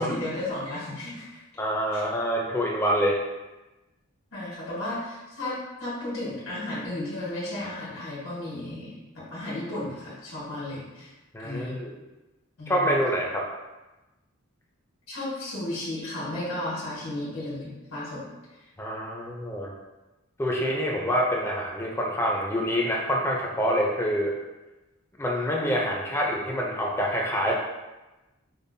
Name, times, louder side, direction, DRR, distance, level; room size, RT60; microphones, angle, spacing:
voice 1, 0.0-1.4 1.9-2.0 4.3-11.1 11.4-11.8 12.6-12.9 15.1-18.2, left 1 dB, 85° left, -8 dB, 1.4 m, -34 dB
voice 2, 1.6-3.2 11.3-12.0 12.7-13.4 18.8-19.7 20.4-24.3 25.2-27.5, equal, 10° left, -2 dB, 0.4 m, -26 dB
5.3 x 2.1 x 2.6 m, 1.1 s
head